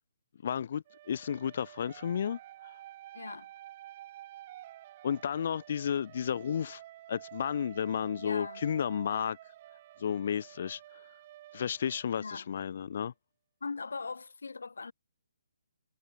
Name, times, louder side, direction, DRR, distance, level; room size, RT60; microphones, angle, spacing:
voice 1, 0.4-2.7 5.0-6.8 7.1-9.4 10.0-11.1 11.5-13.1, left 8 dB, 50° left, 2.8 m, -33 dB
sound 1, 0.9-12.7, right 14 dB, 35° right, 4.9 m, -51 dB
voice 2, 3.1-3.5 8.2-8.6 12.2-12.5 13.6-14.9, left 4 dB, 85° left, 4.6 m, -40 dB
hypercardioid pair, 160°, 0 cm